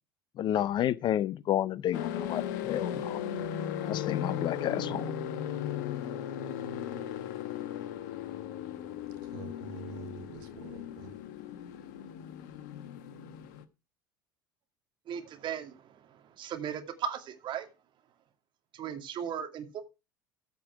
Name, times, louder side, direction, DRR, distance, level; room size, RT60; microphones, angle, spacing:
voice 1, 0.4-3.2 3.8-5.1, left 11 dB, 45° left, 0.6 m, -31 dB
sound 1, 1.9-13.6, left 9 dB, 70° left, 1.1 m, -37 dB
voice 2, 9.2-11.2, right 7 dB, 70° right, 1.9 m, -46 dB
voice 3, 15.1-17.7 18.7-19.8, right 8 dB, 50° right, 2.3 m, -37 dB
14.5 x 5.3 x 4.7 m
hypercardioid pair, 70°, 10 cm